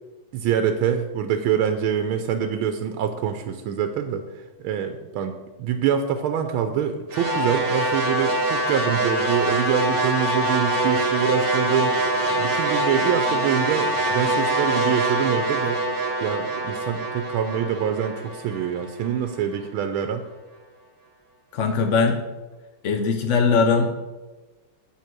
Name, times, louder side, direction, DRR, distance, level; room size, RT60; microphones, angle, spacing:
voice 1, 0.3-11.9 12.3-15.8 16.2-20.2, right 8 dB, 90° right, 7 dB, 1.5 m, -25 dB
sound 1, 7.1-19.4, right 1 dB, 30° right, 1.3 m, -24 dB
voice 2, 21.5-22.2 22.8-23.9, left 5 dB, 65° left, 4 dB, 0.7 m, -20 dB
8.5 x 5.7 x 6.0 m, 1.2 s
omnidirectional pair, 2.2 m